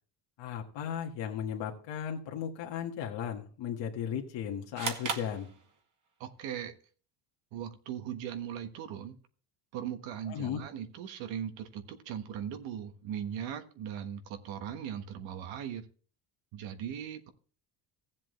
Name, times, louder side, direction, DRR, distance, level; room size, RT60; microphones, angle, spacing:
voice 1, 0.4-5.5 10.3-10.6, left 8 dB, 70° left, 1.7 m, -36 dB
sound 1, 4.8-6.2, right 5 dB, 45° right, 1.8 m, -37 dB
voice 2, 6.2-6.7 7.5-9.2 9.7-15.8 16.5-17.3, right 9 dB, 80° right, 1.5 m, -39 dB
15.5 x 7.5 x 3.2 m
cardioid pair, 110°, 44 cm